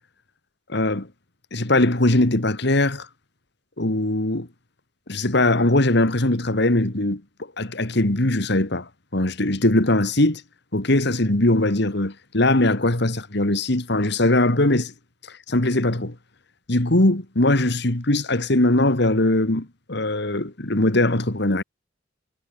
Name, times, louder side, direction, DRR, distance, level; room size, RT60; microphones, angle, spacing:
voice 1, 0.7-1.1 1.5-3.1 3.8-4.5 5.1-7.2 7.6-10.4 10.7-14.9 15.5-16.2 16.7-21.6, left 1 dB, 65° left, 2.4 m, -21 dB
head